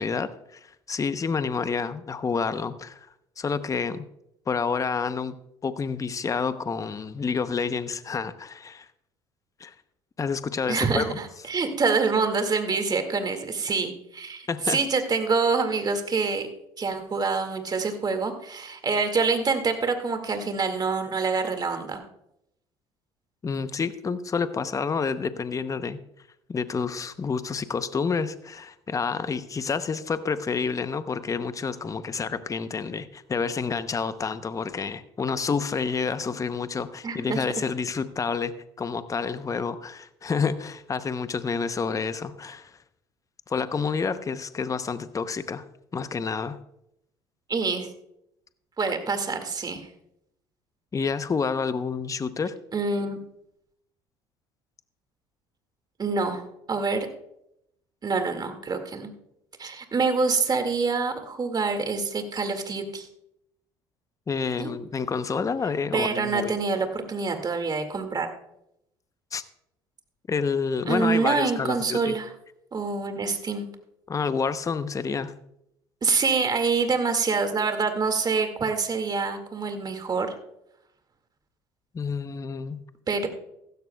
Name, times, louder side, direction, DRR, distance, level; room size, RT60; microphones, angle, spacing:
voice 1, 0.0-3.1 3.4-4.0 4.5-5.4 5.6-8.9 9.6-9.7 10.2-11.2 14.5-14.8 23.4-26.0 26.5-42.8 43.5-45.6 45.9-46.6 50.9-52.5 64.3-66.6 69.3-69.4 70.3-72.2 74.1-75.3 81.9-82.8, left 5 dB, 25° left, 12 dB, 0.8 m, -29 dB
voice 2, 10.7-16.5 16.8-22.0 37.0-37.4 47.5-47.9 48.8-49.9 52.7-53.2 56.0-57.1 58.0-59.1 59.6-63.1 64.6-64.7 65.9-68.3 70.9-72.3 72.7-73.7 76.0-80.4 83.1-83.3, right 4 dB, 35° right, 7 dB, 2.1 m, -26 dB
15.0 x 13.5 x 2.3 m, 0.78 s
supercardioid pair, 75°, 12 cm